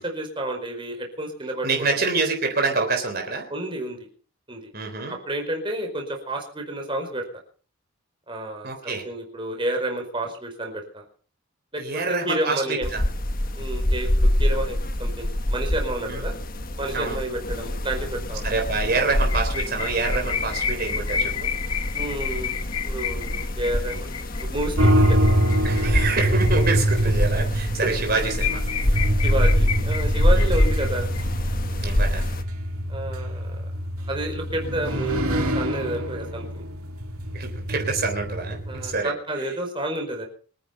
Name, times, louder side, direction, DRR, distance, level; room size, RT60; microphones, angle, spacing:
voice 1, 0.0-1.9 3.5-4.0 4.5-4.7 5.1-7.2 8.3-11.0 11.7-12.9 13.5-16.3 16.8-18.5 21.9-22.5 22.8-25.2 27.8-27.9 29.2-31.1 32.9-33.6 34.1-36.6 38.7-40.3, right 1 dB, 25° right, 2 dB, 4.8 m, -30 dB
voice 2, 1.6-3.5 4.7-5.2 8.6-9.1 11.8-13.0 16.1-16.2 16.9-17.2 18.4-21.5 25.6-28.6 30.3-30.5 31.8-32.2 37.3-39.1, right 3 dB, 45° right, 3 dB, 3.8 m, -26 dB
sound 1, 12.8-32.4, left 1 dB, 40° left, 1.5 m, -26 dB
sound 2, 19.1-27.0 27.4-27.5 27.8-27.9 28.1-31.2, left 8 dB, 85° left, 1.7 m, -31 dB
sound 3, 24.8-39.0, right 1 dB, 90° right, 2.5 m, -25 dB
25.0 x 10.0 x 5.7 m, 0.43 s
head